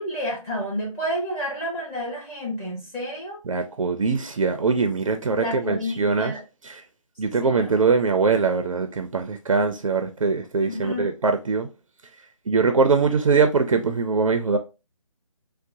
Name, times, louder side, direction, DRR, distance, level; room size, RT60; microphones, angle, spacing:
voice 1, 0.0-3.4 5.3-6.4 7.4-7.7 10.6-11.1, equal, 10° left, 1.0 m, -30 dB
voice 2, 3.5-6.3 6.7-6.8 7.2-11.7 12.5-14.6, right 4 dB, 65° right, 0.5 m, -22 dB
3.8 x 2.1 x 2.5 m
figure-of-eight pair, 150°, 18 cm